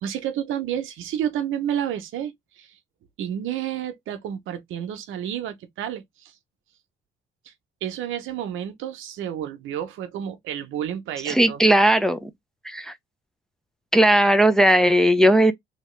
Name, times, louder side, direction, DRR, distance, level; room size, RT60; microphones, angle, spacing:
voice 1, 0.0-2.8 3.2-6.3 7.5-7.6 7.8-11.6, right 10 dB, 85° right, 0.8 m, -30 dB
voice 2, 11.3-12.3 12.6-12.9 13.9-15.5, right 1 dB, 5° left, 0.5 m, -17 dB
2.8 x 2.8 x 3.1 m
cardioid pair, 90°, 20 cm